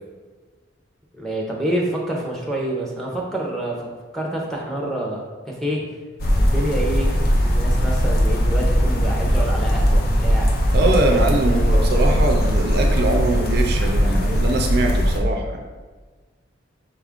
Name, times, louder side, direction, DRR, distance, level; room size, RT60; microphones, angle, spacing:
voice 1, 1.2-5.8 6.4-11.8 13.8-14.3, right 1 dB, ahead, -2 dB, 0.6 m, -28 dB
sound 1, 6.2-15.2, equal, 50° left, 0.5 m, -19 dB
voice 2, 10.7-15.6, right 2 dB, 55° right, 4 dB, 0.4 m, -22 dB
5.7 x 2.4 x 3.5 m, 1.4 s
head